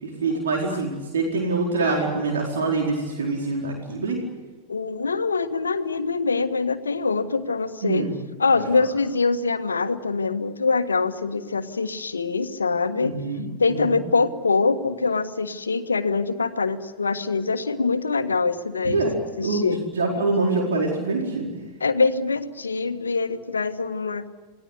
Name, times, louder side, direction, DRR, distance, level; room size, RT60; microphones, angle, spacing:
voice 1, 0.0-4.2 7.8-8.1 8.5-8.9 13.0-13.8 18.8-19.1 19.4-19.6 19.9-21.5, right 3 dB, 65° right, 0 dB, 4.6 m, -25 dB
voice 2, 4.7-8.1 8.4-13.2 13.6-19.0 19.4-19.8 21.8-24.3, left 4 dB, 75° left, 10 dB, 1.5 m, -24 dB
28.0 x 20.0 x 8.3 m, 1.3 s
figure-of-eight pair, 90°, 0 cm